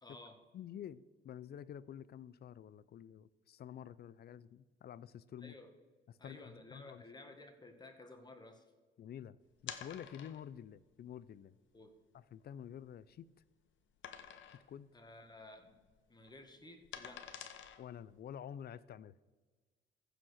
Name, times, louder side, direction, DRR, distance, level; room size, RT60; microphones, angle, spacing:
voice 1, 0.0-0.4 5.4-5.7 6.2-8.6 11.7-12.0 14.9-15.8 16.1-17.5, left 2 dB, 20° left, 5 dB, 1.7 m, -54 dB
voice 2, 0.5-5.5 6.1-7.0 9.0-9.4 9.6-11.5 12.1-13.3 14.5-14.9 17.8-19.1, left 9 dB, 55° left, 18 dB, 0.5 m, -49 dB
sound 1, 9.6-10.6 11.3-11.4 11.8-11.9 12.4-13.4 14.0-14.7 15.1-15.3 15.6-18.2, left 8 dB, 70° left, 1.0 m, -49 dB
15.0 x 5.1 x 6.4 m, 1.4 s
cardioid pair, 90°, 20 cm